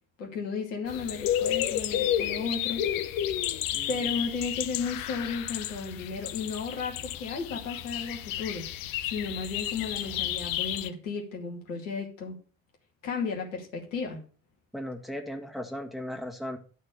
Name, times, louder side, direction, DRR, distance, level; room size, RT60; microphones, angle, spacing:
voice 1, 0.2-2.9 3.9-8.6 9.1-12.3 13.0-14.2, left 5 dB, 75° left, 1 dB, 2.5 m, -34 dB
sound 1, 0.9-10.9, left 11 dB, 55° left, 0.9 m, -32 dB
voice 2, 3.7-4.1 14.7-16.6, left 1 dB, ahead, 3 dB, 2.0 m, -37 dB
12.0 x 4.4 x 6.9 m, 0.39 s
figure-of-eight pair, 50°, 40 cm